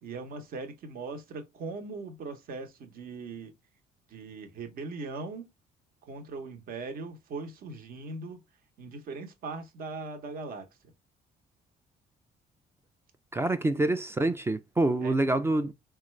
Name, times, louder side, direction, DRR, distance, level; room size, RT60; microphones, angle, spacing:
voice 1, 0.0-3.5 4.1-5.5 6.0-8.4 8.8-10.7 15.0-15.2, right 3 dB, 60° right, 0.9 m, -40 dB
voice 2, 13.3-15.7, right 2 dB, 15° right, 0.3 m, -26 dB
3.7 x 2.3 x 3.1 m
cardioid pair, 110°, 17 cm